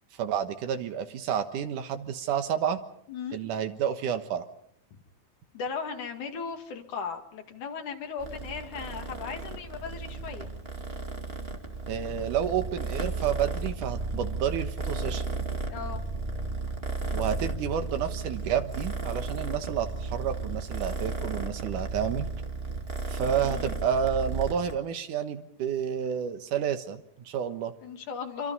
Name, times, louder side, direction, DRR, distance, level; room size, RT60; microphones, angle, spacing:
voice 1, 0.2-2.8 3.3-4.5 11.9-15.4 17.1-22.3 23.1-27.7, right 8 dB, 85° right, 9 dB, 2.9 m, -30 dB
voice 2, 5.5-10.5 15.7-16.0 23.4-23.7 27.8-28.5, left 6 dB, 75° left, 4 dB, 3.5 m, -37 dB
Purr, 8.2-24.7, right 3 dB, 20° right, 2.0 m, -34 dB
26.5 x 24.5 x 5.5 m, 0.72 s
omnidirectional pair, 3.5 m